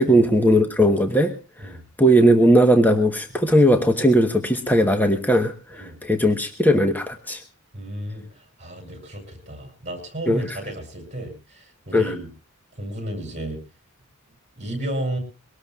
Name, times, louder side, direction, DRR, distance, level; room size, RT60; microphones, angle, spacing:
voice 1, 0.0-1.3 2.0-7.4 10.3-10.5 11.9-12.1, equal, 10° left, 6 dB, 1.1 m, -18 dB
voice 2, 7.7-12.3 12.8-13.6 14.6-15.2, right 1 dB, 35° right, 5 dB, 6.7 m, -33 dB
23.5 x 18.5 x 2.4 m, 0.32 s
head